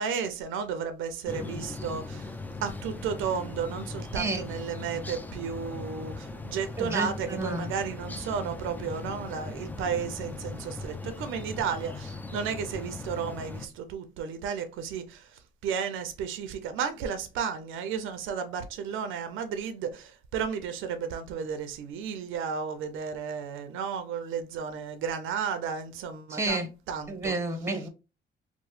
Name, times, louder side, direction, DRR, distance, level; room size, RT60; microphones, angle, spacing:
voice 1, 0.0-2.3 2.6-27.4, right 6 dB, 85° right, 0.5 m, -33 dB
sound 1, 1.3-13.7, left 3 dB, 10° left, 0.3 m, -39 dB
voice 2, 4.1-4.4 6.8-7.7 26.3-26.7 27.1-27.9, right 2 dB, 15° right, 0.8 m, -30 dB
2.9 x 2.0 x 3.0 m
cardioid pair, 90°, 20 cm